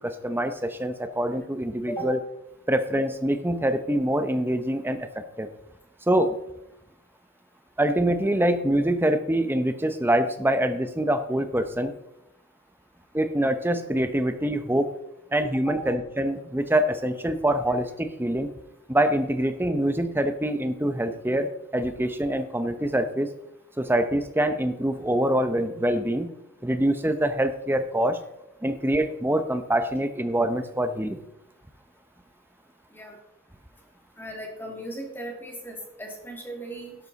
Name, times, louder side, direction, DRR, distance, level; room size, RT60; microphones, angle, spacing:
voice 1, 0.0-2.2 2.7-5.1 5.4-5.5 6.1-6.4 7.8-11.9 13.1-14.9 15.3-18.5 18.9-23.3 23.8-26.3 26.6-28.2 28.6-31.2, right 1 dB, 10° right, 9 dB, 0.9 m, -25 dB
voice 2, 34.2-37.0, right 1 dB, 10° left, 0 dB, 2.6 m, -37 dB
12.5 x 11.0 x 4.1 m, 0.85 s
head